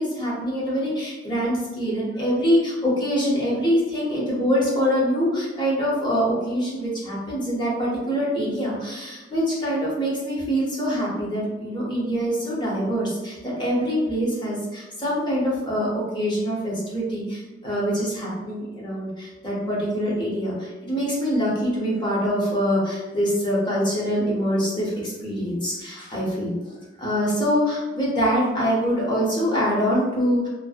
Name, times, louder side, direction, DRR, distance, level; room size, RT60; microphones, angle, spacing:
voice 1, 0.0-26.5 27.0-30.5, equal, 25° left, -6 dB, 0.7 m, -24 dB
2.6 x 2.0 x 2.3 m, 1.2 s
head